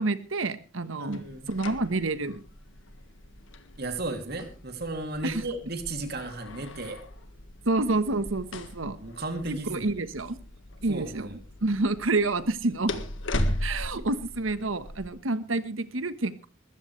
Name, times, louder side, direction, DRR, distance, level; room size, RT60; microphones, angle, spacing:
voice 1, 0.0-2.4 5.2-5.4 7.6-9.0 9.5-10.4 10.8-11.3 11.6-12.9 13.6-16.5, right 2 dB, 85° right, 12 dB, 1.4 m, -28 dB
voice 2, 1.0-1.5 3.8-7.0 9.0-9.9 10.9-11.4 13.9-14.0, right 2 dB, 50° right, 5 dB, 2.9 m, -35 dB
sound 1, 1.1-15.1, left 1 dB, 75° left, 1.7 m, -38 dB
21.0 x 14.5 x 3.3 m, 0.34 s
head